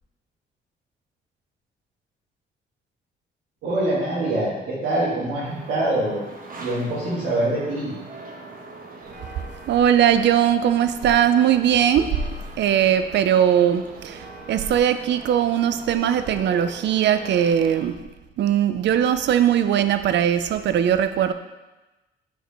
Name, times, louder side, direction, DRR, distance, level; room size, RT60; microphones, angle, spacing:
voice 1, 3.6-6.2 6.6-7.9, right 1 dB, 90° right, -9 dB, 2.4 m, -24 dB
sound 1, 5.4-17.9, right 2 dB, 45° right, 1.1 m, -41 dB
voice 2, 9.7-12.1 12.6-18.0 18.4-21.3, right 10 dB, 60° right, 10 dB, 0.5 m, -20 dB
9.0 x 4.8 x 3.4 m, 1.1 s
cardioid pair, 90°, 20 cm